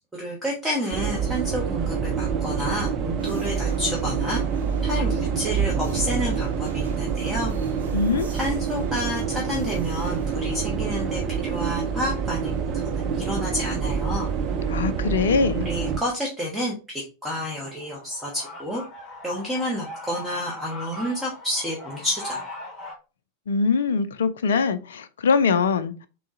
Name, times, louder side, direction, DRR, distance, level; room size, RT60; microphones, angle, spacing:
voice 1, 0.1-4.4 4.8-7.5 8.3-12.5 12.9-14.3 15.6-18.8 19.2-22.4, equal, 5° right, 0.8 m, -30 dB
sound 1, 0.9-16.0, right 6 dB, 35° right, 0.4 m, -27 dB
sound 2, 3.2-14.7, right 2 dB, 70° right, 0.7 m, -41 dB
voice 2, 7.9-8.3 14.7-15.7 23.5-26.1, left 5 dB, 65° left, 0.3 m, -22 dB
sound 3, 17.6-22.9, left 1 dB, 15° left, 1.2 m, -40 dB
3.6 x 3.0 x 2.5 m
figure-of-eight pair, 90°, 0 cm